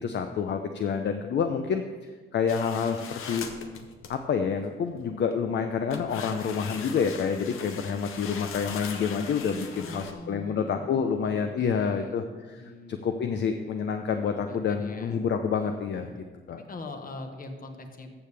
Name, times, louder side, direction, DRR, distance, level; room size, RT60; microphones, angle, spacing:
voice 1, 0.0-3.5 4.1-16.1 16.5-16.6, left 6 dB, 60° left, 6 dB, 0.6 m, -28 dB
sound 1, 2.5-4.2 4.9-5.3 5.9-10.1, left 6 dB, 90° left, 0.8 m, -40 dB
voice 2, 9.8-10.9 11.2-12.2 12.6-12.9 14.4-15.2 16.0-16.2 16.6-18.1, left 2 dB, 45° left, 5 dB, 1.2 m, -42 dB
14.0 x 6.8 x 3.4 m, 1.4 s
cardioid pair, 90°, 21 cm